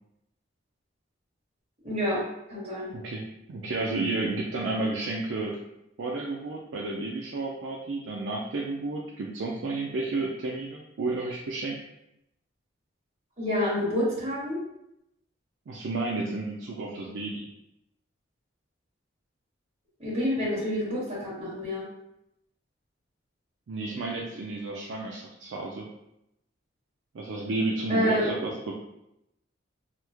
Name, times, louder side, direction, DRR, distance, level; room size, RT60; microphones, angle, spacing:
voice 1, 1.8-2.2 2.5-2.9 13.4-14.6 20.0-21.9 27.9-28.3, left 1 dB, 35° right, -8 dB, 1.4 m, -28 dB
voice 2, 2.9-5.6 6.0-11.8 15.7-17.5 23.7-25.9 27.1-28.7, right 2 dB, 65° right, -2 dB, 0.4 m, -32 dB
3.0 x 2.1 x 3.4 m, 0.83 s
head